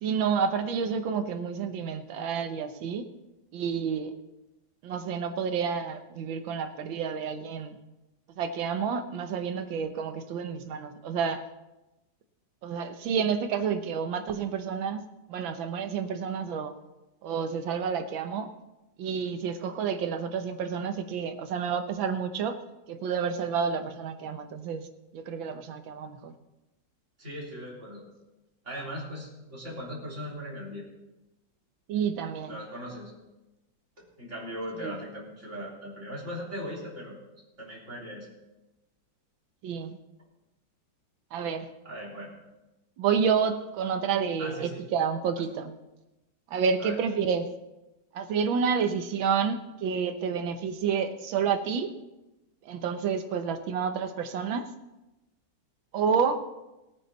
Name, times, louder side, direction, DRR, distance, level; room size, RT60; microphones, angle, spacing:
voice 1, 0.0-3.1 3.5-4.1 4.8-7.8 8.4-11.4 12.6-15.0 15.3-16.8 17.2-18.5 19.0-22.6 22.9-24.9 25.1-26.3 31.9-32.6 34.8-35.0 39.6-40.0 41.3-41.7 43.0-45.7 46.5-47.5 48.1-51.9 52.7-54.7 55.9-56.4, right 6 dB, 75° right, 8 dB, 1.7 m, -29 dB
voice 2, 27.2-28.0 28.6-30.8 32.5-33.1 34.0-37.2 37.6-38.3 41.8-42.3 44.4-44.8 46.8-47.0, equal, 35° right, -4 dB, 3.9 m, -39 dB
19.0 x 9.0 x 4.1 m, 1.0 s
omnidirectional pair, 2.2 m